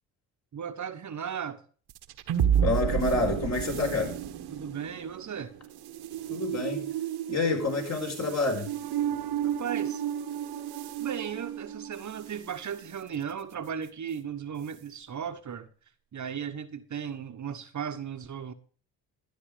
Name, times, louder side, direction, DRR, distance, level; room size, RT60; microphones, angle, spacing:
voice 1, 0.5-1.6 4.5-5.5 9.4-10.0 11.0-15.7 16.1-18.5, right 8 dB, 45° right, 1.3 m, -36 dB
sound 1, 1.9-12.4, right 9 dB, 65° right, 1.3 m, -31 dB
voice 2, 2.6-4.1 6.3-6.8 7.3-8.7, left 3 dB, 40° left, 5.3 m, -28 dB
12.5 x 9.5 x 5.0 m
supercardioid pair, 65°, 41 cm